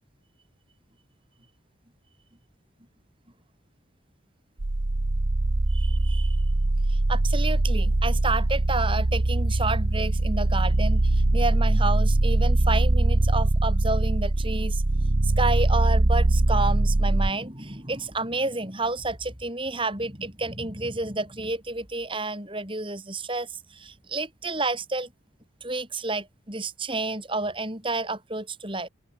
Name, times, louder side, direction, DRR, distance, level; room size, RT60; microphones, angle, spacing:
sound 1, 4.6-17.3, right 2 dB, 65° right, 1.2 m, -22 dB
voice 1, 5.7-6.4 6.9-14.8 15.2-25.1 25.6-28.9, right 3 dB, 25° right, 6.1 m, -30 dB
open air
head